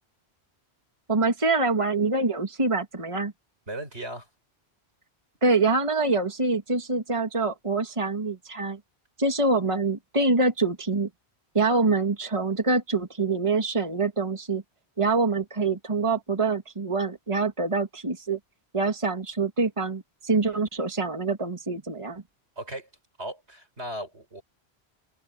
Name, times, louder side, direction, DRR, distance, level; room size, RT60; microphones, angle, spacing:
voice 1, 1.1-3.3 5.4-8.8 9.2-11.1 11.5-14.6 15.0-18.4 18.7-22.2, right 3 dB, 30° right, 2.1 m, -25 dB
voice 2, 3.7-4.3 22.6-22.9 23.2-24.4, right 1 dB, 85° right, 6.9 m, -36 dB
omnidirectional pair, 1.1 m